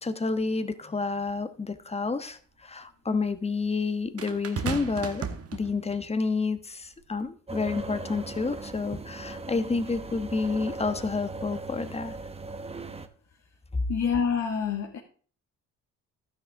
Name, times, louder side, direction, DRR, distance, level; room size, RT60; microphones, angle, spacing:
voice 1, 0.0-5.2 5.5-12.2 13.7-13.8, left 4 dB, 20° left, 11 dB, 1.2 m, -29 dB
sound 1, 1.3-1.4 4.2-6.1 7.0-7.2, right 6 dB, 45° right, 1.4 m, -35 dB
sound 2, 7.5-13.1, right 3 dB, 20° right, 1.0 m, -38 dB
voice 2, 13.9-15.0, left 6 dB, 60° left, 1 dB, 1.8 m, -27 dB
11.5 x 10.0 x 3.6 m, 0.42 s
supercardioid pair, 70°, 32 cm